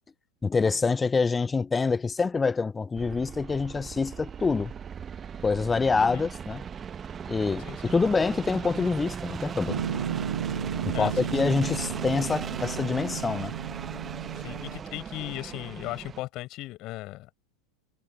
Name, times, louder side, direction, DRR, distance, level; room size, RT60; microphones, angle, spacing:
voice 1, 0.4-4.7 5.4-6.7 7.3-9.8 10.8-13.5, left 4 dB, 15° left, 0.5 m, -26 dB
sound 1, 3.0-16.2, right 7 dB, 20° right, 1.1 m, -38 dB
voice 2, 7.6-7.9 10.9-11.3 14.3-17.3, left 18 dB, 40° left, 5.7 m, -37 dB
Piano, 9.7-14.8, right 8 dB, 65° right, 7.2 m, -34 dB
figure-of-eight pair, 90°, 0 cm